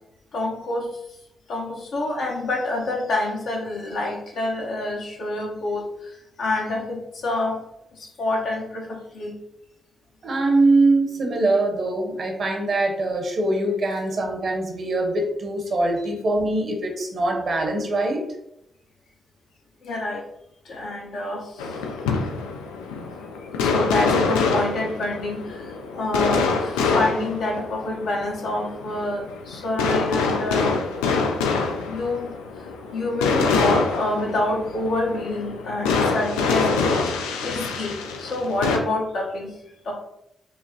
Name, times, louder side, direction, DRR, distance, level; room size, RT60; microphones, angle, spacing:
voice 1, 0.3-0.9 1.5-7.7 8.0-9.3 19.8-20.2 20.6-21.7 23.5-30.7 31.9-32.3 32.9-37.1 37.4-39.6 39.8-39.9, left 2 dB, 70° left, -2 dB, 0.9 m, -27 dB
voice 2, 10.2-18.3, right 2 dB, 60° right, 2 dB, 0.9 m, -22 dB
sound 1, 21.6-38.8, left 4 dB, 90° left, 0.4 m, -25 dB
4.9 x 2.1 x 2.7 m, 0.82 s
hypercardioid pair, 40°, 0 cm